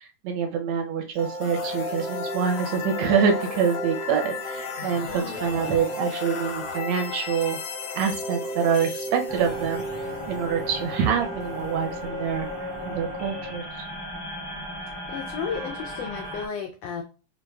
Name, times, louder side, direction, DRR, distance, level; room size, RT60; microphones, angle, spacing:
voice 1, 0.0-7.6 7.9-9.8 10.3-12.5 12.8-13.9, right 7 dB, 75° right, 3 dB, 1.7 m, -26 dB
sound 1, 1.1-13.0, left 2 dB, 65° left, 1.6 m, -33 dB
sound 2, 9.3-16.5, left 1 dB, 45° left, 0.7 m, -35 dB
voice 2, 15.1-17.0, left 6 dB, 85° left, 3 dB, 1.4 m, -33 dB
6.5 x 2.5 x 2.3 m, 0.36 s
omnidirectional pair, 3.4 m